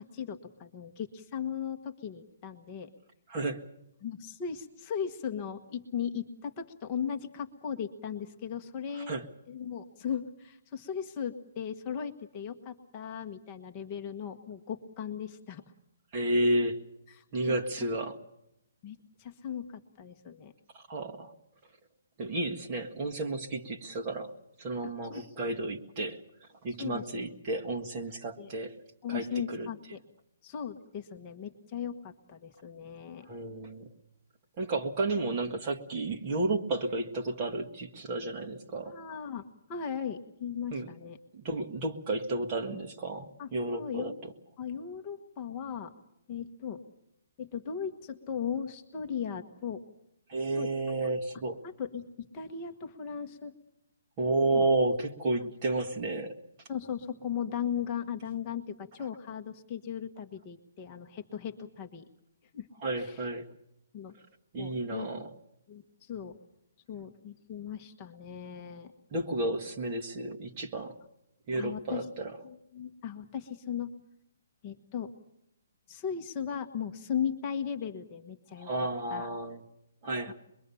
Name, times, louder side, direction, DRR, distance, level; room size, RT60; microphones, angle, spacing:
voice 1, 0.0-2.9 4.0-9.1 9.5-15.6 17.1-17.5 18.8-20.5 24.8-25.3 26.8-27.3 28.4-28.5 29.0-30.0 30.4-33.3 38.9-39.4 39.7-41.2 43.4-44.2 44.6-45.9 46.3-46.8 47.4-49.8 50.5-50.7 51.6-53.5 54.5-54.7 56.7-62.0 62.5-62.7 63.0-63.1 63.9-64.1 64.6-65.1 65.7-66.4 66.9-68.9 71.6-72.0 72.4-73.9 74.6-75.1 75.9-78.7 79.1-79.3 80.3-80.4, left 8 dB, 20° left, 5 dB, 1.3 m, -37 dB
voice 2, 3.3-3.6 8.9-9.3 16.1-16.8 17.3-18.2 20.7-21.3 22.2-26.2 26.6-28.8 29.1-29.7 33.2-33.9 34.6-38.9 40.7-40.9 41.3-44.1 50.3-51.6 54.2-56.4 62.8-63.5 64.5-65.3 69.1-71.0 71.5-72.4 78.6-79.6 80.0-80.3, right 2 dB, 25° right, 3 dB, 1.7 m, -32 dB
24.5 x 22.5 x 7.0 m, 0.81 s
hypercardioid pair, 175°, 0 cm